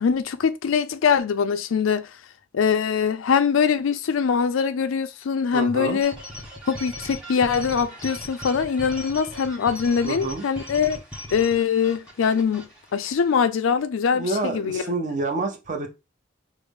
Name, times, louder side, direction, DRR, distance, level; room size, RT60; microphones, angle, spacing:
voice 1, 0.0-2.1 2.5-6.1 6.7-11.0 11.3-14.9, left 6 dB, 90° left, 0.4 m, -23 dB
voice 2, 5.5-6.0 10.0-10.4 14.1-15.9, right 2 dB, 40° right, 0.7 m, -28 dB
sound 1, 6.0-13.3, equal, 5° right, 1.1 m, -39 dB
4.8 x 2.1 x 3.4 m
head